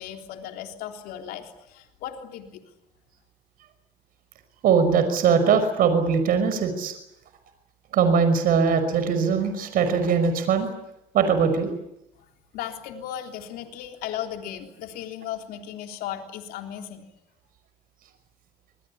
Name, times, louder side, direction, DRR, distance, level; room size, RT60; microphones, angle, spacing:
voice 1, 0.0-2.6 12.2-12.3 12.5-17.1, left 10 dB, 80° left, 4 dB, 3.6 m, -36 dB
voice 2, 4.6-6.9 7.9-10.7 11.1-11.7, right 6 dB, 70° right, 9 dB, 5.6 m, -21 dB
27.0 x 21.5 x 8.7 m, 0.83 s
supercardioid pair, 75°, 15 cm